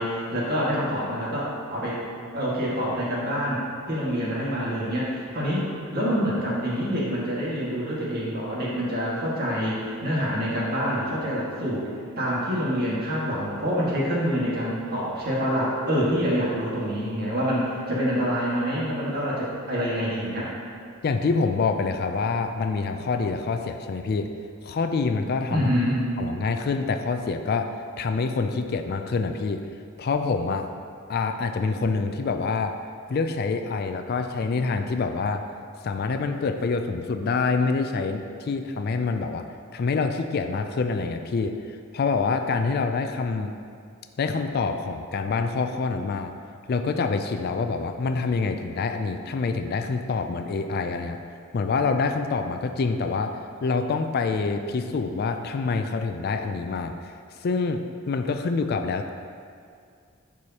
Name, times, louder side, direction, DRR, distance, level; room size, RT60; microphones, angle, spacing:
voice 1, 0.0-2.0 2.3-3.6 3.9-11.9 12.2-20.5 25.5-26.0, equal, 50° right, -6 dB, 1.8 m, -26 dB
voice 2, 21.0-24.3 24.6-25.7 26.2-27.7 28.0-29.6 30.0-30.7 31.1-32.7 33.1-35.4 35.8-39.4 39.7-43.5 44.2-46.3 46.7-51.2 51.5-57.1 57.4-59.1, left 4 dB, 50° left, 6 dB, 0.3 m, -26 dB
11.0 x 4.8 x 2.9 m, 2.3 s
head